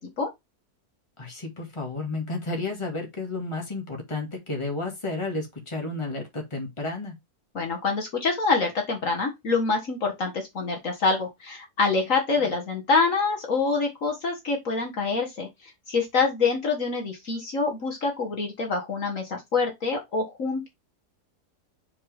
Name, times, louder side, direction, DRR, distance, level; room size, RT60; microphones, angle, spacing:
voice 1, 1.2-7.1, left 2 dB, 20° left, 2.1 m, -32 dB
voice 2, 7.6-15.5 15.9-20.7, left 4 dB, 55° left, 1.9 m, -26 dB
6.9 x 4.9 x 3.4 m
omnidirectional pair, 1.7 m